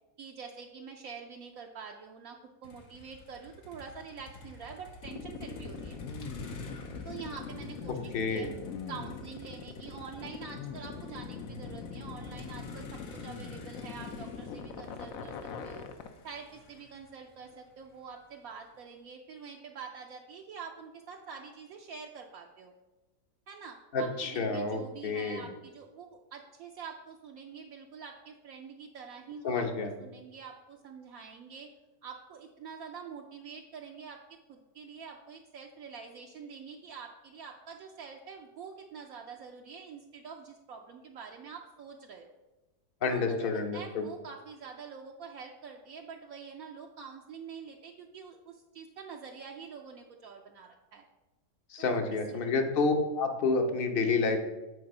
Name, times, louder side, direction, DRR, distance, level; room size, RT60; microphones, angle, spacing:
voice 1, 0.2-6.0 7.0-8.5 8.9-15.9 16.2-22.7 23.5-29.7 30.0-31.7 32.0-34.2 34.5-42.3 43.1-51.0 51.8-52.0 52.3-52.5, right 6 dB, 70° right, 1 dB, 1.0 m, -46 dB
Motor vehicle (road), 2.6-18.8, left 2 dB, 85° left, 1.5 m, -50 dB
sound 1, 5.0-16.1, left 6 dB, 65° left, 1.0 m, -41 dB
voice 2, 8.1-8.5 23.9-25.5 29.4-29.9 43.0-44.1 51.7-54.4, left 4 dB, 45° left, 5 dB, 0.8 m, -29 dB
8.6 x 3.9 x 5.4 m, 1.1 s
omnidirectional pair, 1.7 m